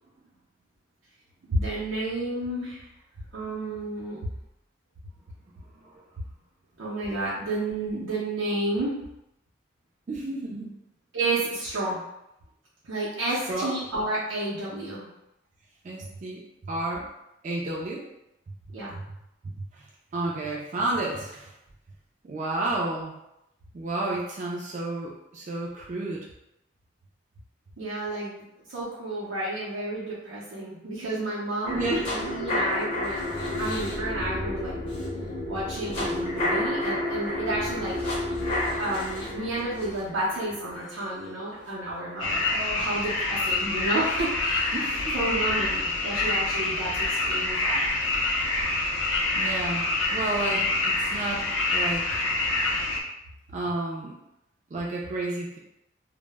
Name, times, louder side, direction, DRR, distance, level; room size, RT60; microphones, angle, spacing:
voice 1, 1.5-2.9 3.3-4.2 6.8-9.0 11.1-12.0 12.8-15.1 18.7-18.9 27.8-33.2 33.6-34.8 35.5-38.0 38.8-47.8, right 2 dB, 85° right, -7 dB, 0.5 m, -31 dB
voice 2, 10.1-10.7 13.5-13.8 15.8-17.1 17.4-18.0 19.7-19.8 20.1-21.5 22.2-23.1 23.7-26.3 31.7-32.1 44.7-45.1 49.4-52.2 53.5-54.2 54.7-55.6, right 2 dB, 40° right, -3 dB, 0.3 m, -31 dB
sound 1, 31.6-41.7 42.1-42.2, left 1 dB, 30° left, 0.6 m, -30 dB
sound 2, 42.2-53.0, left 2 dB, 85° left, 0.4 m, -26 dB
2.0 x 2.0 x 3.2 m, 0.86 s
head